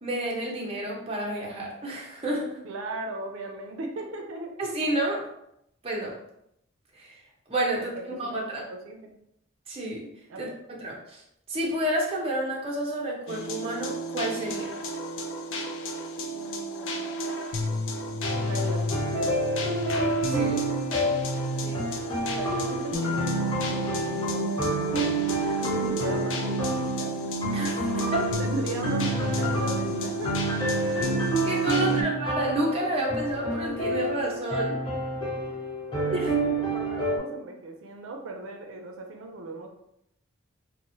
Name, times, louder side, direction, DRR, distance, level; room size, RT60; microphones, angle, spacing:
voice 1, 0.0-2.5 4.6-5.2 5.8-6.1 7.0-7.1 7.5-8.6 9.7-10.1 10.4-10.5 10.8-11.2 11.5-14.7 20.2-20.6 25.6-26.0 27.5-27.9 31.0-31.2 31.4-34.8 36.1-36.3, right 1 dB, 30° right, -3 dB, 0.6 m, -30 dB
voice 2, 2.6-4.5 7.8-9.1 10.3-10.5 16.3-17.2 18.4-19.4 21.5-21.9 22.2-25.1 25.8-27.1 27.8-30.4 31.7-32.0 36.0-39.7, right 2 dB, 85° right, 3 dB, 0.4 m, -38 dB
sound 1, 13.3-32.0, right 1 dB, 70° left, 0.4 m, -31 dB
sound 2, 18.2-37.2, right 1 dB, 25° left, 1.0 m, -29 dB
2.9 x 2.0 x 2.6 m, 0.78 s
head